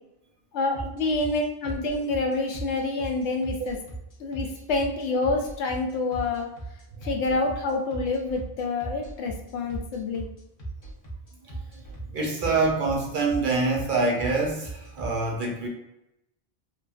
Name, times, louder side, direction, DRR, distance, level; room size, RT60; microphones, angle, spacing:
voice 1, 0.5-3.8 4.2-6.5 7.0-10.3, left 3 dB, 85° left, 2 dB, 0.9 m, -27 dB
sound 1, 0.7-15.1, right 2 dB, 30° left, 0.5 m, -37 dB
voice 2, 11.4-15.7, right 3 dB, 60° right, 0 dB, 0.7 m, -26 dB
2.9 x 2.4 x 2.3 m, 0.87 s
omnidirectional pair, 1.1 m